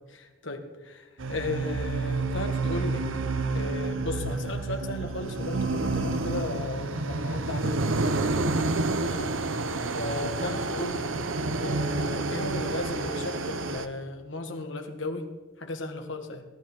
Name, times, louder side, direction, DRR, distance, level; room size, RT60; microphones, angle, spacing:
voice 1, 0.1-3.1 3.5-8.3 9.0-9.3 10.0-11.1 11.6-15.3 15.6-16.4, left 2 dB, 70° left, 5 dB, 1.8 m, -35 dB
sound 1, 1.2-13.9, right 3 dB, 80° right, 1.0 m, -29 dB
18.0 x 12.0 x 4.6 m, 1.2 s
head